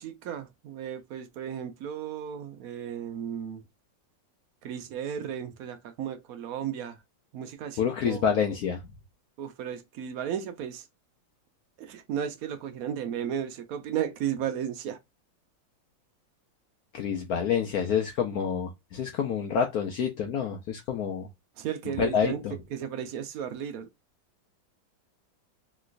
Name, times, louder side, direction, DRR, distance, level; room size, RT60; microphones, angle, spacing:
voice 1, 0.0-3.6 4.6-7.0 7.3-8.2 9.4-10.9 11.8-15.0 21.6-22.4 22.7-23.9, right 9 dB, 85° right, 0.7 m, -34 dB
voice 2, 7.8-8.8 16.9-21.3 22.0-22.5, left 7 dB, 70° left, 0.9 m, -28 dB
3.1 x 3.0 x 2.4 m
omnidirectional pair, 2.1 m